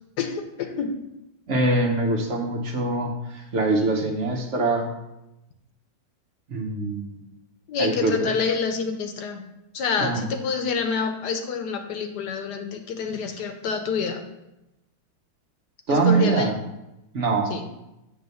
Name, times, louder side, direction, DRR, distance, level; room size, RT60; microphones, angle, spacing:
voice 1, 0.2-0.9 7.7-9.4 9.7-14.2 15.9-16.5 17.5-17.6, left 5 dB, 70° left, 6 dB, 1.3 m, -27 dB
voice 2, 1.5-4.9 6.5-7.2 7.8-8.3 10.0-10.2 15.9-16.6 17.1-17.5, right 3 dB, 50° right, 3 dB, 1.0 m, -23 dB
7.8 x 3.9 x 6.8 m, 0.92 s
omnidirectional pair, 2.0 m